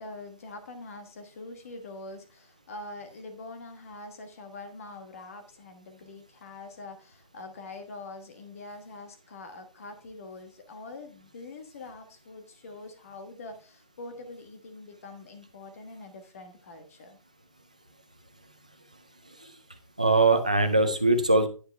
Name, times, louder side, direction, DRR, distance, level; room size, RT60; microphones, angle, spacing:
voice 1, 0.0-17.2, left 2 dB, 25° left, 6 dB, 1.3 m, -44 dB
voice 2, 20.0-21.5, right 2 dB, 10° right, 7 dB, 0.4 m, -22 dB
9.9 x 8.3 x 3.2 m, 0.35 s
hypercardioid pair, 175°, 18 cm